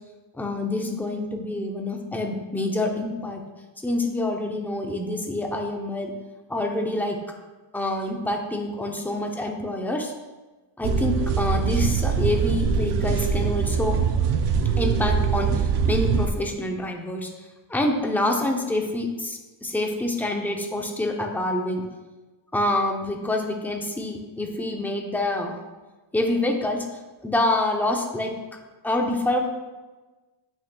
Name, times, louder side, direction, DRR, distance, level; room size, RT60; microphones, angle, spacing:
voice 1, 0.3-3.4 3.8-6.1 6.5-7.4 7.7-10.1 10.8-14.0 14.8-17.3 17.7-21.8 22.5-25.6 26.1-26.9 27.2-28.6 28.8-29.5, left 1 dB, 5° left, 2 dB, 0.5 m, -26 dB
sound 1, 10.8-16.3, right 6 dB, 60° right, 0.6 m, -23 dB
8.5 x 6.1 x 2.2 m, 1.2 s
cardioid pair, 145°, 48 cm